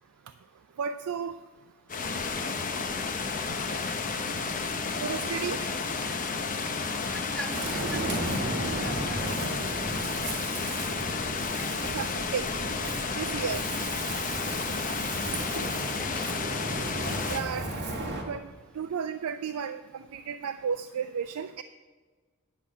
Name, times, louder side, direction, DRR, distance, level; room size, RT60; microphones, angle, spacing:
voice 1, 0.8-1.4 5.0-5.6 11.9-12.5 12.7-12.9 13.2-13.6 15.5-15.8 17.3-17.7 18.3-18.4 18.8-21.6, right 7 dB, 85° right, 9 dB, 0.4 m, -33 dB
sound 1, 1.9-17.4, left 4 dB, 40° left, 0.7 m, -32 dB
voice 2, 7.0-9.3 13.0-13.2 16.0-16.3, equal, 5° left, 2 dB, 1.1 m, -43 dB
Ocean, 7.5-18.2, right 2 dB, 50° right, 1.7 m, -35 dB
10.5 x 5.7 x 7.4 m, 1.4 s
head